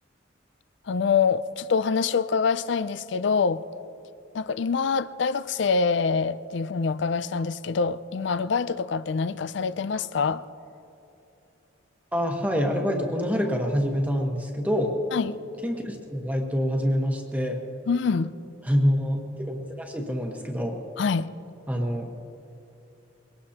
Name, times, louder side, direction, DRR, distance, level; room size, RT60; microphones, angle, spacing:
voice 1, 0.9-3.6 4.3-10.4 15.1-15.4 17.9-18.3 21.0-21.3, left 5 dB, 60° left, 15 dB, 0.4 m, -25 dB
voice 2, 12.1-14.9 15.6-17.6 18.7-20.8 21.7-22.2, equal, 10° right, 2 dB, 1.2 m, -26 dB
22.5 x 18.0 x 2.9 m, 2.9 s
head